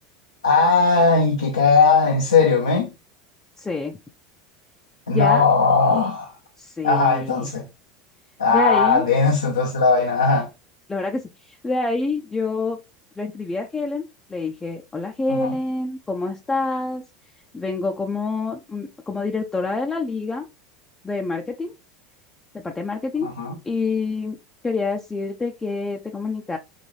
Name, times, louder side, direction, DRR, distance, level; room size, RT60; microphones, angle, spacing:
voice 1, 0.4-2.9 5.1-6.3 6.8-7.6 8.4-10.5 15.3-15.5 23.2-23.5, left 4 dB, 90° left, 0.7 m, -18 dB
voice 2, 3.6-4.0 5.1-5.4 6.6-7.5 8.5-9.0 10.9-12.8 13.2-17.0 17.5-20.5 21.0-21.7 22.5-23.3 23.6-24.4 24.6-26.6, left 3 dB, 15° left, 0.5 m, -27 dB
4.1 x 2.5 x 3.1 m
hypercardioid pair, 80°, 3 cm